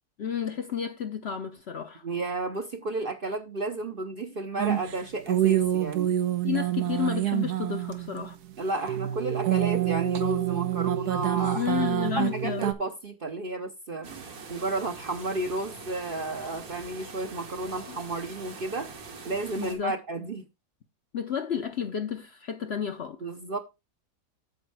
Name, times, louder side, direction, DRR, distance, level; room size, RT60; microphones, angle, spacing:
voice 1, 0.2-2.0 6.4-8.4 11.5-12.7 17.9-18.0 19.6-20.0 21.1-23.2, left 8 dB, 55° left, 0.8 m, -31 dB
voice 2, 2.0-6.2 8.6-11.7 12.2-18.9 19.2-20.4 23.2-23.6, right 2 dB, 45° right, 0.8 m, -32 dB
sound 1, 4.6-8.5 8.9-12.7, right 12 dB, 85° right, 1.4 m, -27 dB
sound 2, 14.0-19.8, right 4 dB, 70° right, 1.9 m, -43 dB
8.7 x 7.2 x 3.3 m
omnidirectional pair, 1.6 m